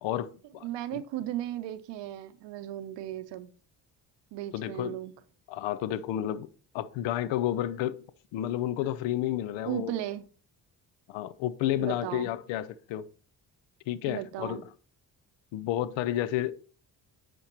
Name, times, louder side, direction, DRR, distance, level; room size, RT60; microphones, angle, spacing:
voice 1, 0.0-0.6 0.9-1.0 4.5-5.0 5.5-6.5 6.7-8.0 8.3-9.9 11.1-13.1 13.9-14.6 15.5-16.5, left 12 dB, 80° left, 0.5 m, -31 dB
voice 2, 0.6-3.5 4.3-5.1 9.7-10.2 11.8-12.3 14.1-14.6, right 13 dB, 75° right, 0.7 m, -36 dB
8.8 x 5.1 x 2.9 m
supercardioid pair, 60°, 43 cm